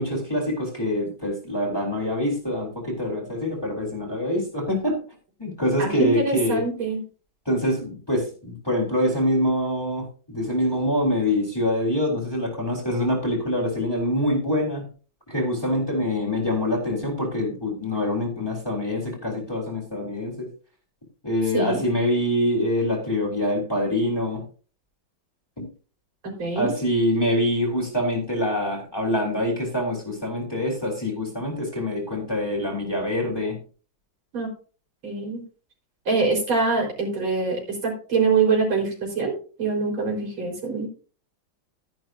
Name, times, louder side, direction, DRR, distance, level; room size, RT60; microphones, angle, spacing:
voice 1, 0.0-5.0 5.4-6.6 7.5-14.9 15.3-20.5 21.2-24.4 25.6-25.7 26.6-33.6, left 1 dB, 10° left, -1 dB, 3.8 m, -25 dB
voice 2, 5.8-7.0 21.5-21.8 26.4-26.7 34.3-34.5 35.0-35.4 36.1-40.9, right 4 dB, 75° right, 0 dB, 5.0 m, -24 dB
13.5 x 10.5 x 2.6 m, 0.37 s
omnidirectional pair, 2.2 m